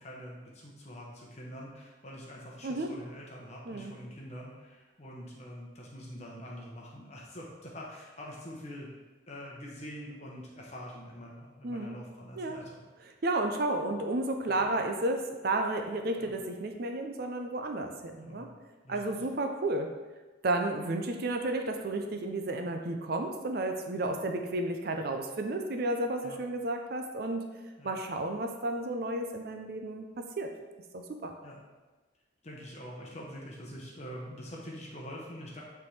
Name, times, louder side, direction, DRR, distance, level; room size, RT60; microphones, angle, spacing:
voice 1, 0.0-8.9 9.3-12.8 14.5-14.6 16.2-16.3 18.2-18.5 18.8-19.2 20.7-20.9 24.0-24.2 26.2-26.4 27.8-27.9 31.4-31.6 32.4-35.6, equal, 35° left, -3 dB, 0.9 m, -45 dB
voice 2, 11.6-12.0 12.4-12.6 13.2-18.5 18.9-19.9 20.4-27.4 27.8-30.1 30.4-30.5 30.9-31.3, right 2 dB, 50° right, 4 dB, 0.5 m, -32 dB
8.3 x 3.5 x 3.2 m, 1.2 s
head